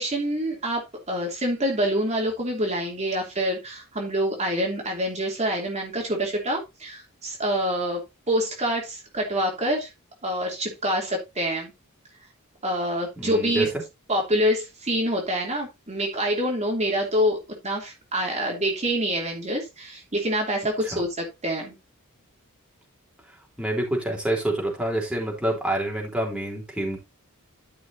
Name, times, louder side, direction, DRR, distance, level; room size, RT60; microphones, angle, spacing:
voice 1, 0.0-9.9 10.2-11.7 12.6-13.7 14.1-21.7, equal, 30° right, 0 dB, 2.9 m, -26 dB
voice 2, 13.2-13.7 20.8-21.0 23.3-27.0, right 1 dB, 5° right, -1 dB, 3.6 m, -27 dB
12.5 x 6.3 x 2.7 m, 0.22 s
head